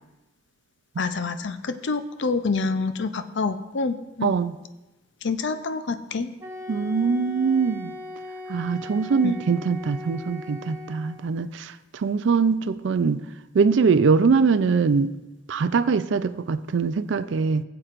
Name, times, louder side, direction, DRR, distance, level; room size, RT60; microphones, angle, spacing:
voice 1, 1.0-4.3 5.2-6.3 9.2-9.3, left 4 dB, 60° left, 10 dB, 0.5 m, -27 dB
voice 2, 4.2-4.6 6.7-7.9 8.5-13.2 13.5-15.1 15.5-17.6, right 5 dB, 65° right, 13 dB, 0.4 m, -22 dB
Wind instrument woodwind instrument, 6.4-11.3, left 2 dB, 15° right, 1.8 m, -39 dB
16.5 x 7.9 x 2.5 m, 1.0 s
head